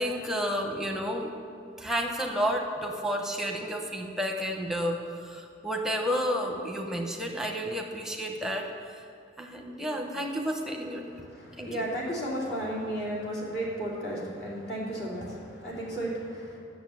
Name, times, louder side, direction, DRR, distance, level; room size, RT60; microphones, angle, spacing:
voice 1, 0.0-1.3 1.8-9.0 9.4-11.0 11.6-11.8, equal, ahead, 2 dB, 0.9 m, -31 dB
voice 2, 11.1-16.6, right 1 dB, 55° left, -5 dB, 2.8 m, -34 dB
9.2 x 7.1 x 7.6 m, 2.3 s
head